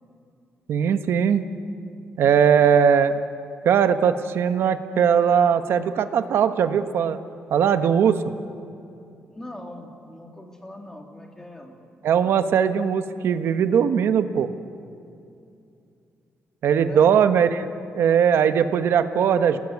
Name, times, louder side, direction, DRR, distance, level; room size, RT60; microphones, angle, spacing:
voice 1, 0.7-1.5 2.2-3.2 3.6-7.2 7.5-8.3 12.0-14.5 16.6-17.7 17.9-19.6, right 7 dB, 75° right, 9 dB, 1.3 m, -19 dB
voice 2, 9.3-11.8 16.8-17.2, left 1 dB, 10° left, 2 dB, 2.9 m, -40 dB
28.5 x 19.5 x 9.6 m, 2.6 s
wide cardioid pair, 150°, 4 cm